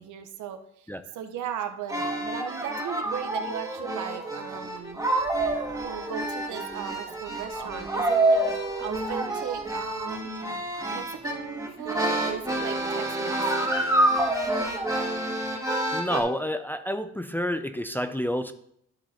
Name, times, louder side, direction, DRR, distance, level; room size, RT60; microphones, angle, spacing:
voice 1, 0.0-0.9 1.1-5.0 5.8-8.4 8.8-10.6 10.9-13.3, right 9 dB, 75° right, 7 dB, 1.0 m, -37 dB
sound 1, 1.9-16.2, right 1 dB, 10° right, 2.0 m, -28 dB
voice 2, 15.9-18.5, equal, 5° left, 8 dB, 0.5 m, -29 dB
12.0 x 3.9 x 4.3 m, 0.71 s
cardioid pair, 90°, 30 cm